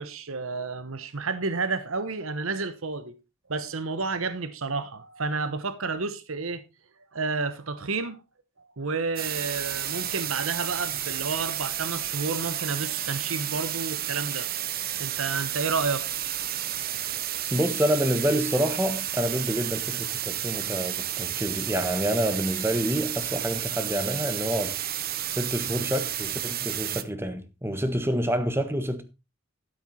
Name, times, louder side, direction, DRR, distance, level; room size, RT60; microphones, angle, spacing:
voice 1, 0.0-3.1 3.5-6.6 7.1-8.2 8.8-14.5 15.0-16.1, right 4 dB, 80° right, 1.1 m, -30 dB
sound 1, 9.2-27.0, right 11 dB, 45° right, 1.0 m, -31 dB
voice 2, 17.5-24.8 25.3-29.0, equal, 10° right, 1.4 m, -27 dB
13.0 x 8.0 x 4.3 m
head